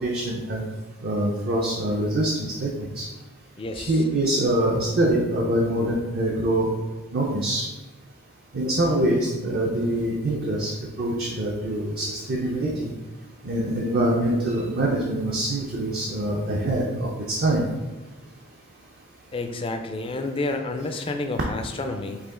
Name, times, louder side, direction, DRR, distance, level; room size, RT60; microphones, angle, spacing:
voice 1, 0.0-0.6 1.0-3.1 3.8-6.7 7.1-7.7 8.5-10.7 11.0-12.9 13.4-17.6, right 1 dB, 45° right, -2 dB, 0.5 m, -24 dB
voice 2, 3.6-4.0 19.3-22.2, left 2 dB, 25° left, 6 dB, 0.3 m, -30 dB
4.9 x 2.8 x 3.7 m, 1.2 s
head